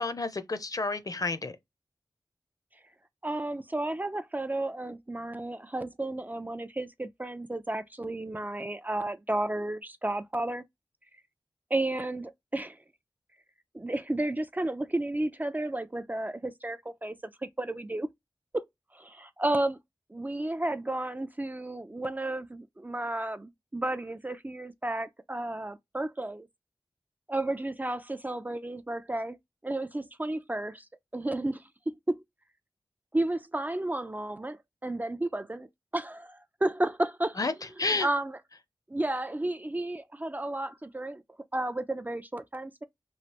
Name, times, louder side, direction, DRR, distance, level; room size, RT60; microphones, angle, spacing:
voice 1, 0.0-1.6 37.4-38.1, left 3 dB, 50° left, 0.6 m, -30 dB
voice 2, 3.2-10.6 11.7-12.8 13.7-17.1 17.4-18.1 18.5-18.6 18.9-19.8 20.1-26.5 27.3-29.4 29.6-30.8 31.1-32.2 33.1-35.7 35.9-37.4 38.0-38.3 38.9-41.2 41.5-42.8, right 1 dB, 20° right, 0.4 m, -32 dB
3.1 x 2.5 x 2.9 m
wide cardioid pair, 50°, 8 cm